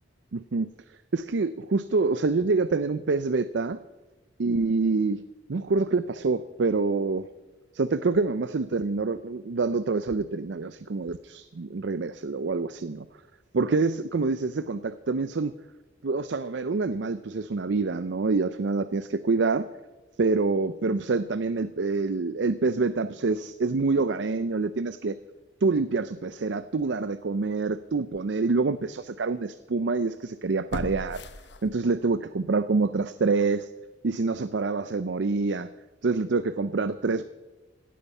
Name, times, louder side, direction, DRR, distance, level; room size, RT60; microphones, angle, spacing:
voice 1, 0.3-0.7 1.1-3.8 4.4-5.2 5.5-7.3 7.7-13.1 13.5-15.6 16.0-19.7 20.2-25.2 25.6-31.2 31.6-33.7 34.0-35.7 36.0-37.2, right 3 dB, 70° right, 13 dB, 0.5 m, -26 dB
sound 1, 27.4-27.5 28.1-28.2 30.7-32.1 32.5-32.6, left 2 dB, 65° left, 1.0 m, -38 dB
17.0 x 12.5 x 5.5 m, 1.1 s
head